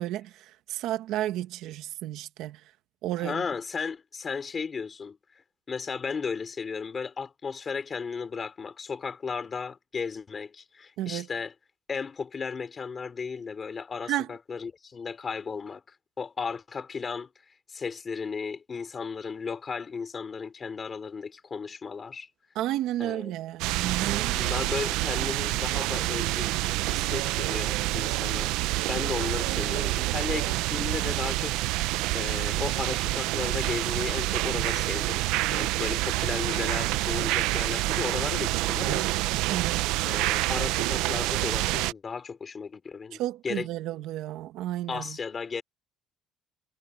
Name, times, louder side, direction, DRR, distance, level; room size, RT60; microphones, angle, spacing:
voice 1, 0.0-2.6 3.0-3.4 11.0-11.3 14.1-14.3 22.5-24.4 39.5-39.8 43.1-45.2, right 13 dB, 60° right, 1.4 m, -32 dB
voice 2, 3.2-5.2 5.7-11.5 11.9-17.3 17.7-22.3 23.0-23.3 24.3-26.5 26.8-28.5 28.9-31.5 32.1-35.2 35.5-39.1 39.4-39.5 40.0-43.7 44.9-45.6, left 5 dB, 20° left, 3.3 m, -35 dB
sound 1, 23.6-41.9, right 18 dB, 75° right, 0.6 m, -27 dB
cardioid pair, 175°, 0 cm